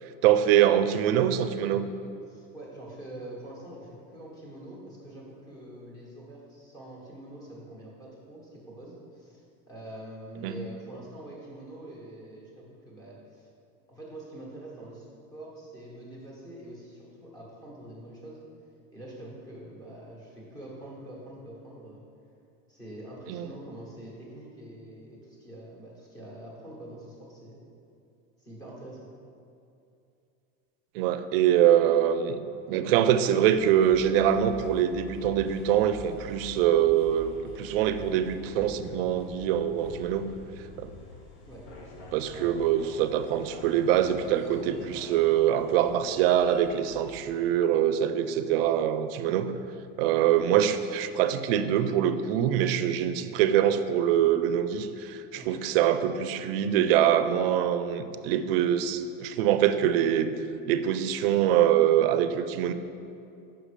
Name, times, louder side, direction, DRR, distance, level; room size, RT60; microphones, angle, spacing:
voice 1, 0.2-1.8 10.4-10.6 23.3-23.5 30.9-32.4 32.7-40.3 40.8-40.9 42.1-49.5 50.0-60.3 60.7-62.7, right 10 dB, 70° right, 11 dB, 0.5 m, -24 dB
voice 2, 2.3-13.5 13.9-18.4 18.9-22.0 22.7-27.6 28.4-29.1 41.5-41.7 55.3-55.6, right 1 dB, 10° left, -4 dB, 1.2 m, -45 dB
sound 1, 33.4-47.2, left 2 dB, 90° left, 1.3 m, -46 dB
5.9 x 5.2 x 4.9 m, 2.6 s
supercardioid pair, 175°, 31 cm